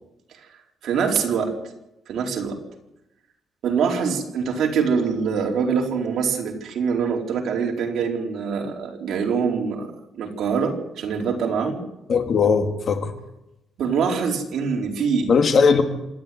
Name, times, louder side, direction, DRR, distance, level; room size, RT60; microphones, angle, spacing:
voice 1, 0.8-1.5 2.1-2.6 3.6-11.8 13.8-15.3, right 6 dB, 65° right, 1 dB, 4.3 m, -24 dB
voice 2, 12.1-13.1 15.3-15.8, left 5 dB, 45° left, 6 dB, 2.2 m, -18 dB
26.5 x 11.5 x 9.5 m, 0.91 s
cardioid pair, 145°, 0 cm